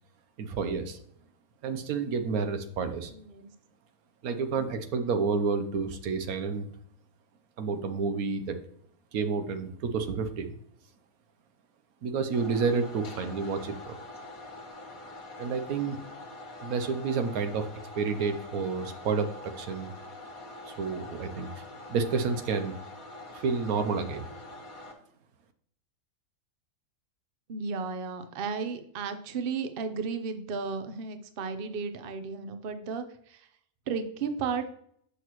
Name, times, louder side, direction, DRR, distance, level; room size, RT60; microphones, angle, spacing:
voice 1, 0.4-1.0 1.6-3.1 4.2-6.7 7.6-8.6 9.1-10.5 12.0-14.0 15.4-16.0 16.6-17.7 18.0-19.9 20.7-21.5 21.9-22.7 23.3-24.3, right 5 dB, 85° right, 8 dB, 1.3 m, -30 dB
voice 2, 3.1-3.5 27.5-33.0 33.3-33.4 33.9-34.7, right 5 dB, 50° right, 8 dB, 0.8 m, -34 dB
sound 1, 12.3-24.9, left 2 dB, 80° left, 1.8 m, -45 dB
8.2 x 6.0 x 3.0 m, 0.66 s
omnidirectional pair, 1.5 m